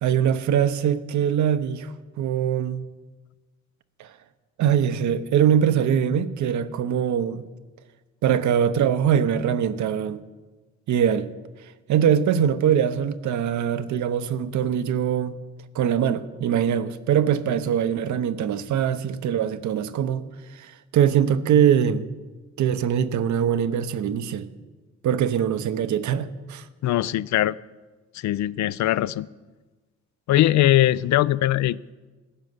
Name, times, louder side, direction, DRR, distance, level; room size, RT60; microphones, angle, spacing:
voice 1, 0.0-2.9 4.0-4.1 4.6-7.4 8.2-10.2 10.9-11.3 11.9-15.4 15.7-22.1 22.6-24.5 25.0-26.6, right 9 dB, 70° right, 0.9 m, -22 dB
voice 2, 26.8-27.6 28.1-29.3 30.3-31.9, left 14 dB, 70° left, 0.4 m, -21 dB
14.5 x 6.4 x 9.5 m
cardioid pair, 90°, 30 cm